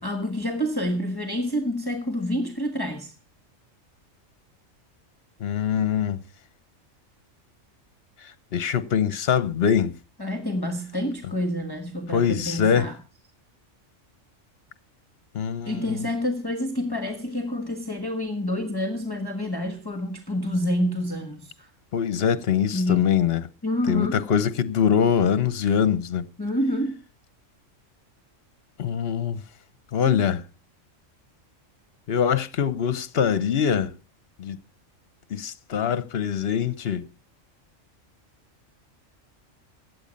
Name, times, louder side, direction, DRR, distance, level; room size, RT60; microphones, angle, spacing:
voice 1, 0.0-3.1 10.2-13.0 15.6-21.7 22.7-23.1 23.6-24.2 26.4-27.0, left 1 dB, 15° left, 1.5 m, -28 dB
voice 2, 5.4-6.2 8.2-9.9 12.1-12.9 15.3-16.0 21.9-23.4 23.9-26.2 28.8-29.4 29.9-30.4 32.1-33.9 34.4-34.6 35.3-37.1, left 8 dB, 50° left, 1.1 m, -23 dB
16.0 x 9.6 x 5.3 m
omnidirectional pair, 1.4 m